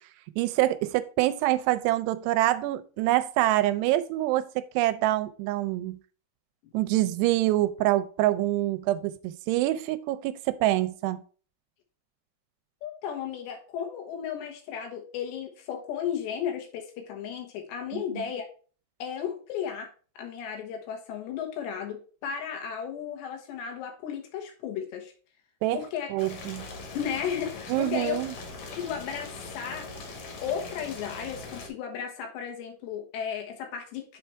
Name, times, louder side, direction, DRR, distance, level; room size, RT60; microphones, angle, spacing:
voice 1, 0.4-4.5 4.8-6.0 6.7-11.2 17.9-18.0 25.6-25.8 26.1-26.7 27.7-28.3, right 15 dB, 85° right, 2.6 m, -25 dB
voice 2, 12.8-18.5 19.0-19.9 20.2-25.1 25.7-26.1 27.0-29.9 30.4-34.2, left 8 dB, 90° left, 3.5 m, -34 dB
Boiling, 26.2-31.7, left 3 dB, 60° left, 2.9 m, -41 dB
6.8 x 4.5 x 4.4 m
omnidirectional pair, 4.9 m